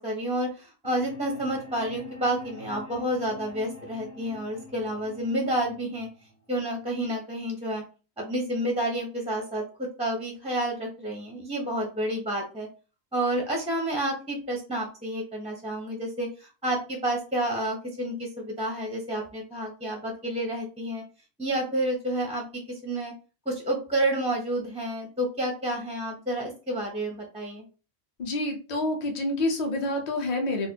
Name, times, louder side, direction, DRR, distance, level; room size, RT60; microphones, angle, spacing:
voice 1, 0.0-6.1 6.5-7.8 8.2-12.7 13.1-21.0 21.4-23.1 23.5-27.6, right 1 dB, 10° right, 0 dB, 0.4 m, -30 dB
sound 1, 0.8-6.8, left 3 dB, 70° left, 1.0 m, -45 dB
voice 2, 28.2-30.7, left 1 dB, 45° left, 3 dB, 0.7 m, -28 dB
4.2 x 2.0 x 2.7 m, 0.34 s
omnidirectional pair, 1.2 m